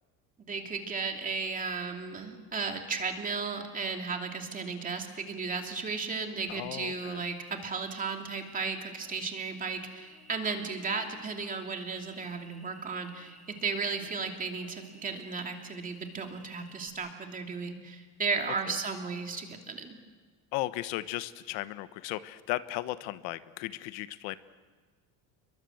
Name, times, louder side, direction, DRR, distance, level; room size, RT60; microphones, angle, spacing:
voice 1, 0.4-20.0, right 4 dB, 20° right, 3 dB, 2.8 m, -35 dB
voice 2, 6.5-7.2 18.7-18.8 20.5-24.4, left 17 dB, 85° left, 13 dB, 1.2 m, -36 dB
Cricket, 6.5-16.9, equal, ahead, 7.0 m, -56 dB
29.0 x 23.0 x 7.9 m, 1.5 s
cardioid pair, 165°, 38 cm